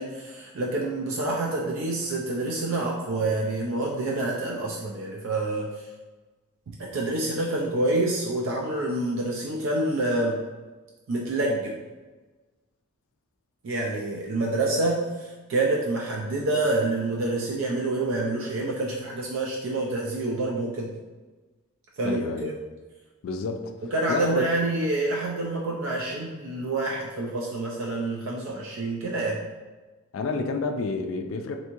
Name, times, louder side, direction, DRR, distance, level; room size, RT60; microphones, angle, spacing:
voice 1, 0.0-5.9 6.7-10.4 11.1-11.7 13.6-20.9 22.0-22.5 23.8-29.4, right 2 dB, 60° right, -2 dB, 0.4 m, -27 dB
voice 2, 22.0-22.5 23.2-23.7 24.1-24.4 30.1-31.6, left 4 dB, 60° left, 5 dB, 0.3 m, -29 dB
3.4 x 2.7 x 2.9 m, 1.3 s
head